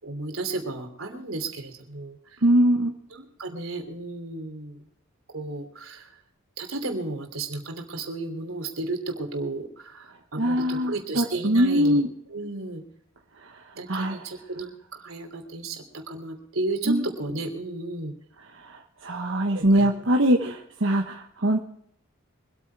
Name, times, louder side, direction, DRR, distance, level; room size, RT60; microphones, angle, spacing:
voice 1, 0.0-2.4 3.1-4.8 5.3-6.2 6.6-12.0 12.3-12.8 13.7-18.1 19.5-20.0 20.4-20.5, right 2 dB, 85° right, 5 dB, 3.0 m, -33 dB
voice 2, 2.4-2.9 10.4-12.1 13.9-14.2 16.9-17.0 18.6-21.6, right 1 dB, 65° right, 2 dB, 1.2 m, -22 dB
24.0 x 9.0 x 4.7 m, 0.67 s
head